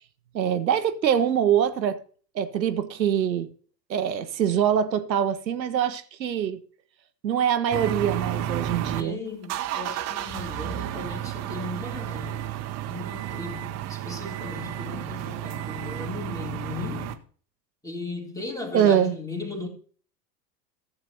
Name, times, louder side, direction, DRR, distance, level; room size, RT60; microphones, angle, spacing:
voice 1, 0.3-2.0 2.3-3.5 3.9-6.6 7.2-9.2 18.7-19.2, right 9 dB, 90° right, 0.7 m, -24 dB
sound 1, 7.7-9.0 9.4-17.1, right 11 dB, 35° right, 0.7 m, -32 dB
voice 2, 9.0-12.5 12.9-17.2 17.8-19.7, left 3 dB, 5° left, 2.0 m, -36 dB
14.0 x 7.4 x 2.9 m
figure-of-eight pair, 80°, 50 cm